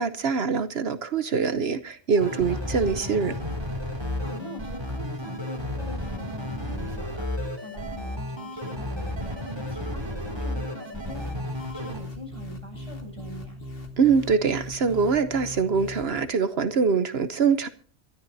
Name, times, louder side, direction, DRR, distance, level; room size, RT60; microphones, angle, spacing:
voice 1, 0.0-3.4 14.0-17.7, right 5 dB, 65° right, 1.1 m, -24 dB
sound 1, 2.2-12.0, left 1 dB, 25° right, 3.0 m, -32 dB
voice 2, 4.2-13.6, equal, 30° left, 8.0 m, -43 dB
sound 2, 11.1-16.2, left 1 dB, 60° left, 2.4 m, -39 dB
26.5 x 13.0 x 2.8 m
omnidirectional pair, 1.1 m